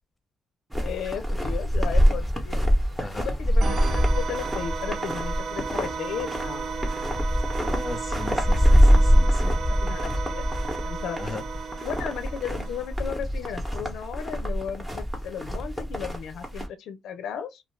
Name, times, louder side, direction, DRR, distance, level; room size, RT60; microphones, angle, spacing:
sound 1, 0.7-16.7, equal, 10° right, 0.9 m, -24 dB
voice 1, 0.8-2.6 3.1-6.8 9.7-10.5 10.8-11.3 11.8-17.6, left 8 dB, 80° left, 0.5 m, -35 dB
sound 2, 3.6-13.0, right 6 dB, 50° right, 0.3 m, -34 dB
voice 2, 7.6-9.8 11.2-11.4, left 3 dB, 25° left, 0.7 m, -37 dB
2.3 x 2.3 x 3.1 m
cardioid pair, 90°, 0 cm